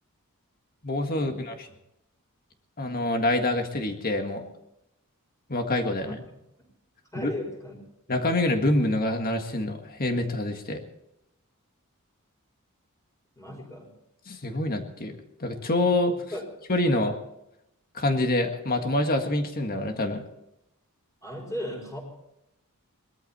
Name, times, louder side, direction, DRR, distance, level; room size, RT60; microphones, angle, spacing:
voice 1, 0.8-1.7 2.8-4.4 5.5-6.2 7.2-7.3 8.1-10.8 14.3-16.1 16.7-17.2 17.9-20.2, left 1 dB, 40° left, 5 dB, 1.7 m, -26 dB
voice 2, 7.1-7.8 13.4-13.9 16.1-16.4 21.2-22.0, left 1 dB, 15° left, 1 dB, 5.1 m, -36 dB
20.5 x 13.5 x 4.2 m, 0.85 s
head